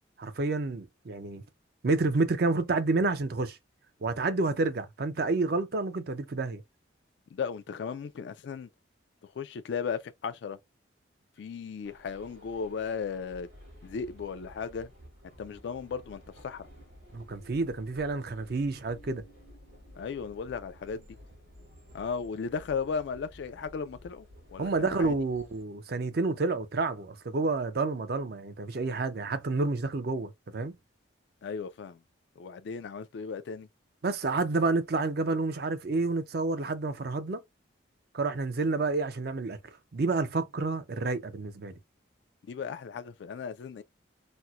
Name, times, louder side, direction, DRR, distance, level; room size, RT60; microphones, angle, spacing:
voice 1, 0.2-1.4 1.8-3.6 4.0-6.6 17.1-19.2 24.6-30.7 34.0-37.4 38.1-39.6 39.9-41.7, right 3 dB, 50° right, 0.5 m, -29 dB
voice 2, 7.3-8.7 9.2-10.6 11.4-13.5 13.8-14.9 15.4-16.7 20.0-21.0 21.9-24.3 24.5-25.1 31.4-32.0 32.4-33.7 42.4-43.8, left 6 dB, 60° left, 0.3 m, -36 dB
sound 1, 11.8-25.6, equal, 85° right, 2.2 m, -53 dB
4.2 x 2.0 x 2.3 m
head